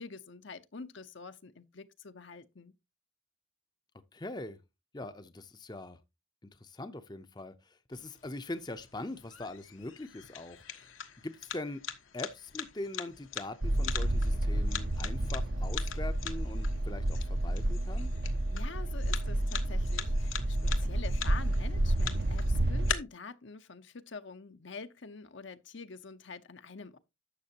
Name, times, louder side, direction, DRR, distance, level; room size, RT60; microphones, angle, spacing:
voice 1, 0.0-2.7 18.5-27.0, left 4 dB, 65° left, 0.8 m, -46 dB
voice 2, 4.1-4.6 4.9-6.0 6.4-10.9 11.2-11.8 12.1-18.1, left 2 dB, 20° left, 0.6 m, -42 dB
sound 1, 7.9-22.9, left 9 dB, 85° left, 1.3 m, -43 dB
sound 2, 13.6-22.9, right 1 dB, 55° right, 0.8 m, -30 dB
12.0 x 7.4 x 2.9 m
head